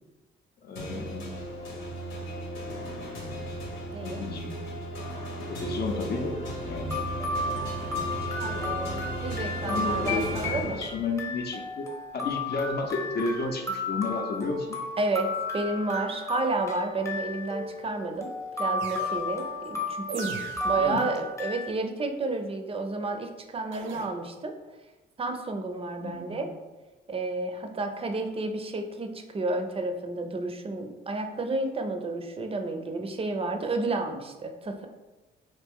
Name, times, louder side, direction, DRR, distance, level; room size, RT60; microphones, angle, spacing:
voice 1, 0.6-1.3 4.0-4.7 5.5-6.3 6.6-7.0 8.4-11.9 12.1-14.8 20.7-21.1 26.0-26.4, left 3 dB, 55° left, 3 dB, 0.6 m, -32 dB
sound 1, 0.8-11.4, right 1 dB, 85° left, 0.9 m, -35 dB
voice 2, 3.9-4.2 7.9-8.1 8.4-10.8 15.0-18.3 18.6-20.4 20.6-24.5 25.2-26.5 27.1-34.9, right 2 dB, 30° right, 6 dB, 0.4 m, -31 dB
sound 2, 5.0-5.5 6.4-6.5 6.9-21.7, left 2 dB, 15° left, 0.7 m, -34 dB
sound 3, 18.8-19.4 20.1-20.9 23.7-24.1, right 5 dB, 75° right, 0.6 m, -40 dB
3.0 x 2.5 x 3.5 m, 1.1 s
cardioid pair, 90°, 20 cm